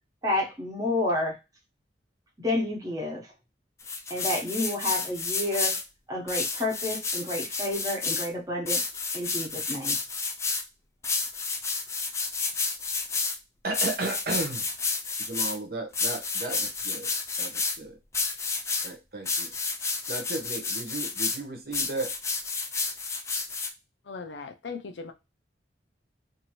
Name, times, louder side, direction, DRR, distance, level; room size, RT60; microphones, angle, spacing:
voice 1, 0.2-1.4 2.4-3.3 4.1-5.8 6.1-8.8 9.1-10.0, left 1 dB, 20° right, 0.9 m, -30 dB
sound 1, 3.8-5.8 6.3-8.3 8.7-10.6 11.0-13.4 13.7-15.6 15.9-17.8 18.1-18.9 19.3-21.4 21.7-23.7, left 4 dB, 15° left, 0.3 m, -30 dB
voice 2, 13.6-14.7 15.2-17.1 17.4-17.9 18.8-19.5 20.1-22.1, right 2 dB, 55° right, 0.9 m, -34 dB
voice 3, 24.1-25.1, left 4 dB, 80° left, 0.6 m, -38 dB
2.7 x 2.6 x 3.0 m
head